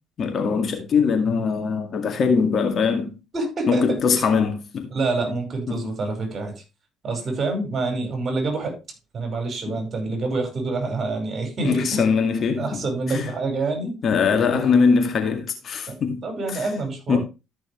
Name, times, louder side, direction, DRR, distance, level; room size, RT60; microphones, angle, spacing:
voice 1, 0.2-3.2 3.7-4.9 5.7-5.8 9.7-9.8 11.6-12.8 13.1-13.3 14.0-16.3 16.5-16.6 17.1-17.2, left 5 dB, 50° left, 2.1 m, -21 dB
voice 2, 3.3-4.0 4.9-6.6 7.0-8.8 9.1-12.0 12.6-14.0 14.4-14.6 15.9-17.2, right 3 dB, 40° right, 5.2 m, -27 dB
13.5 x 6.2 x 3.2 m
hypercardioid pair, 55°, 0 cm